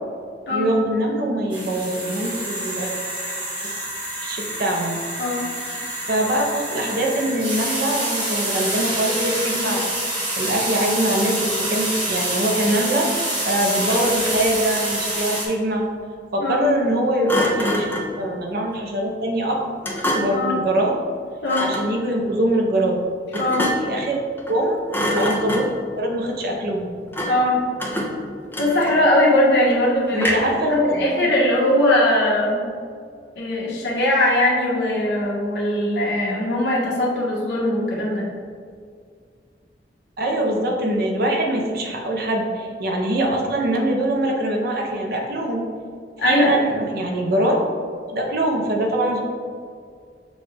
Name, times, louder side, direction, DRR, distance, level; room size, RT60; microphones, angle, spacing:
voice 1, 0.5-2.9 4.2-5.1 6.1-9.9 10.4-13.1 13.4-15.8 16.3-19.6 20.1-20.9 21.6-23.0 23.3-24.2 24.5-24.8 25.1-25.7 26.0-26.9 30.1-31.3 40.2-45.6 46.2-47.6 48.1-49.2, right 1 dB, 60° right, 0 dB, 0.7 m, -23 dB
sound 1, 1.5-15.5, right 1 dB, 30° right, 1.1 m, -27 dB
Thump thud, 13.7-14.5 17.3-18.2 19.8-20.5 21.4-21.9 23.3-24.0 24.4-24.6 24.9-25.9 27.1-27.5 27.8-29.2 30.2-30.6, equal, 10° left, 0.5 m, -26 dB
voice 2, 27.2-27.6 28.6-30.3 30.6-32.6 33.3-38.2 46.2-46.6, left 1 dB, 75° left, -5 dB, 1.2 m, -20 dB
6.2 x 2.4 x 3.3 m, 2.1 s
head